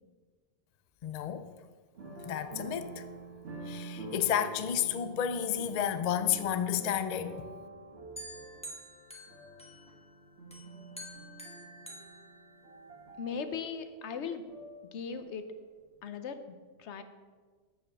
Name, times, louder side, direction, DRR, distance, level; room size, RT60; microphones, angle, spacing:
voice 1, 1.0-1.5 2.2-3.0 3.7-7.5, left 9 dB, 55° left, 0.4 m, -31 dB
sound 1, 1.9-15.6 15.9-16.0, right 3 dB, 65° right, 1.5 m, -47 dB
sound 2, 8.2-10.1 10.5-13.0, equal, 5° left, 0.9 m, -48 dB
voice 2, 13.2-14.4 14.9-15.5 16.0-17.0, left 6 dB, 80° left, 1.0 m, -38 dB
6.7 x 5.3 x 7.1 m
omnidirectional pair, 1.2 m